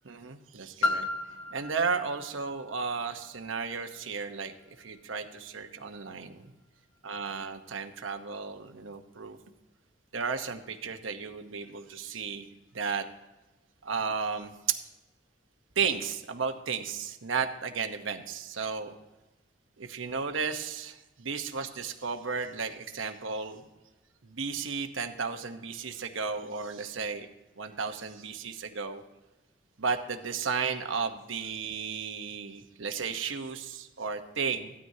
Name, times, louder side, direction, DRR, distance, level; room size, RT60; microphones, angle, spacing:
voice 1, 0.1-1.1 1.5-4.5 4.8-6.5 7.0-9.4 10.1-12.5 12.7-13.1 13.8-14.8 15.8-18.9 19.8-23.6 24.2-27.3 27.6-29.0 29.8-34.7, right 5 dB, 80° right, 6 dB, 1.0 m, -34 dB
Piano, 0.8-6.3 7.0-7.1, left 2 dB, 85° left, 1.6 m, -36 dB
16.0 x 12.5 x 2.8 m, 1.1 s
head